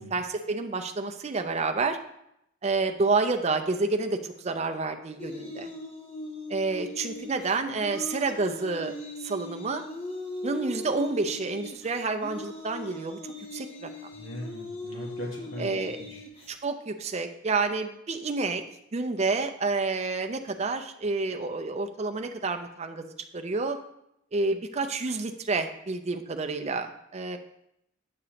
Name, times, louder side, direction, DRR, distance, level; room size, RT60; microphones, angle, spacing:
voice 1, 0.0-2.0 2.6-5.7 6.5-8.9 9.2-9.8 10.4-13.2 13.5-13.9 15.6-16.0 16.5-18.6 18.9-23.8 24.3-27.4, right 3 dB, 30° right, 6 dB, 0.5 m, -29 dB
sound 1, 5.2-16.5, left 1 dB, 30° left, 1.2 m, -40 dB
voice 2, 14.1-15.7 16.0-16.2, left 1 dB, 70° left, -2 dB, 1.7 m, -39 dB
8.4 x 6.6 x 2.9 m, 0.79 s
head